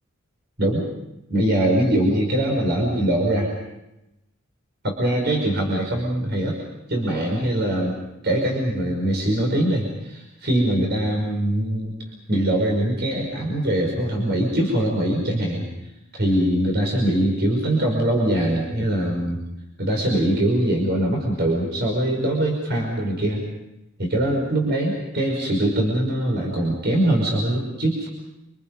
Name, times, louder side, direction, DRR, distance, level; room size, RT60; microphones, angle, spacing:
voice 1, 1.3-3.5 4.8-6.6 6.9-7.9 8.2-11.9 12.3-15.7 16.1-19.4 19.8-23.4 24.0-28.1, right 1 dB, 55° right, 1 dB, 5.5 m, -22 dB
28.0 x 27.5 x 5.4 m, 0.91 s
head